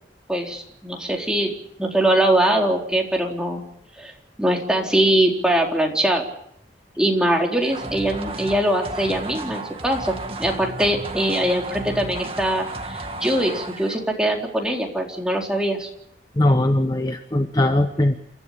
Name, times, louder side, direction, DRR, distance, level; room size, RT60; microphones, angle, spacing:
voice 1, 0.3-1.5 1.8-3.6 4.0-4.1 4.4-6.2 7.0-15.9, right 1 dB, 5° right, 0 dB, 4.1 m, -22 dB
sound 1, 7.6-14.1, right 2 dB, 35° right, 2.0 m, -33 dB
voice 2, 16.4-18.2, left 1 dB, 20° left, 7 dB, 1.0 m, -20 dB
29.5 x 13.5 x 8.9 m, 0.73 s
head